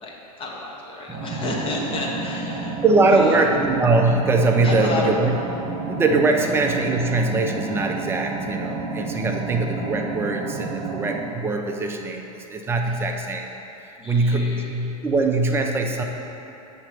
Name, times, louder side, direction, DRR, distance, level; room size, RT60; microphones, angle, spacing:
voice 1, 0.0-3.4 4.6-5.1 14.0-14.8, left 2 dB, 30° left, -2 dB, 1.1 m, -30 dB
voice 2, 1.1-1.4 2.8-5.4 5.9-13.5 14.0-16.0, right 3 dB, 15° right, 2 dB, 0.5 m, -22 dB
sound 1, 1.1-11.2, right 3 dB, 50° right, 0.9 m, -31 dB
7.3 x 3.0 x 5.7 m, 3.0 s
supercardioid pair, 125°, 19 cm